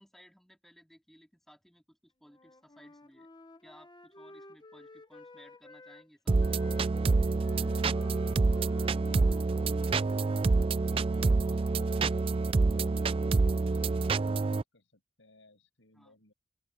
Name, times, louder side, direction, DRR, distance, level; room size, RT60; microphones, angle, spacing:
voice 1, 0.0-3.3 3.6-6.6 15.9-16.1, equal, ahead, 3.7 m, -59 dB
Wind instrument woodwind instrument, 2.3-6.1 6.4-10.9, left 2 dB, 20° left, 1.2 m, -53 dB
sound 1, 6.3-14.6, right 3 dB, 30° right, 0.3 m, -27 dB
voice 2, 10.8-12.3 12.7-13.1 13.4-16.3, left 2 dB, 70° left, 7.3 m, -62 dB
open air
head